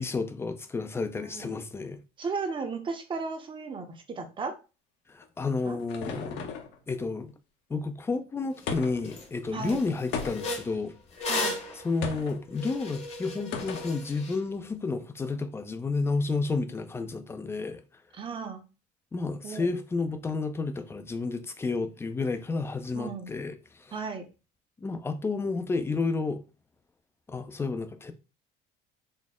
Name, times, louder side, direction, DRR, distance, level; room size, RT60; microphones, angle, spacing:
voice 1, 0.0-2.0 5.1-6.4 6.9-7.3 7.7-10.9 11.7-17.8 19.1-23.9 24.8-26.4 27.3-28.1, left 3 dB, 10° left, 0.4 m, -31 dB
voice 2, 1.1-1.5 2.2-4.5 5.7-5.8 9.5-9.8 11.3-11.6 18.2-18.6 19.4-19.8 22.9-23.3 23.9-24.2, right 4 dB, 25° right, 0.7 m, -35 dB
sound 1, 5.2-6.8 8.7-9.2 10.1-10.7 12.0-12.4 13.5-14.0, left 5 dB, 65° left, 0.8 m, -36 dB
sound 2, 8.6-8.7 9.0-9.3 9.6-14.4, left 2 dB, 30° left, 0.9 m, -36 dB
4.1 x 2.0 x 3.6 m
cardioid pair, 130°, 20 cm